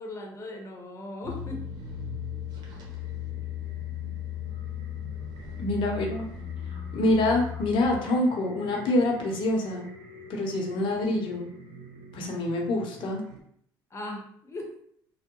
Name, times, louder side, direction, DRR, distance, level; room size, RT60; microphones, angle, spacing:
voice 1, 0.0-1.6 13.9-14.7, left 1 dB, 30° left, 1 dB, 0.9 m, -38 dB
sound 1, 1.2-8.0, left 11 dB, 50° right, 1.0 m, -37 dB
sound 2, 1.2-13.4, right 3 dB, 80° right, 0.6 m, -47 dB
voice 2, 5.6-6.3 6.9-9.9 10.3-11.5 12.1-13.2, left 1 dB, 65° left, 1 dB, 0.8 m, -26 dB
3.4 x 2.1 x 3.0 m, 0.68 s
supercardioid pair, 85°, 9 cm